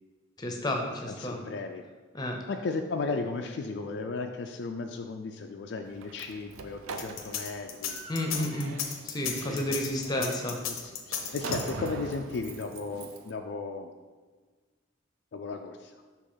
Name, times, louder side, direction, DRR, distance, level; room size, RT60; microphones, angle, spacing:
voice 1, 0.4-1.4 2.1-2.4 8.1-8.7 9.0-10.6 11.2-11.3, left 1 dB, 20° left, 2 dB, 0.6 m, -31 dB
voice 2, 1.1-1.8 2.5-8.0 8.3-8.5 9.3-9.8 10.1-10.3 10.8-13.9 15.3-16.0, left 3 dB, 55° left, 4 dB, 0.3 m, -35 dB
Slam, 5.8-13.3, right 4 dB, 90° right, 0.5 m, -42 dB
sound 1, 6.9-12.1, left 8 dB, 85° left, 0.7 m, -34 dB
6.6 x 3.0 x 5.5 m, 1.4 s
head